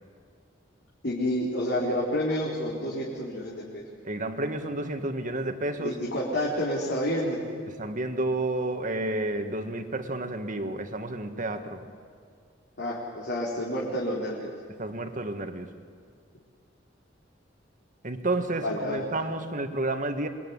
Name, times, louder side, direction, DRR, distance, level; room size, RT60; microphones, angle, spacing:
voice 1, 1.0-3.8 5.8-7.4 12.8-14.5 18.6-19.0, equal, 65° left, -5 dB, 4.4 m, -29 dB
voice 2, 4.1-6.0 7.8-11.9 14.8-15.7 18.0-20.3, right 2 dB, 45° right, 7 dB, 1.9 m, -30 dB
26.5 x 22.0 x 9.8 m, 2.2 s
head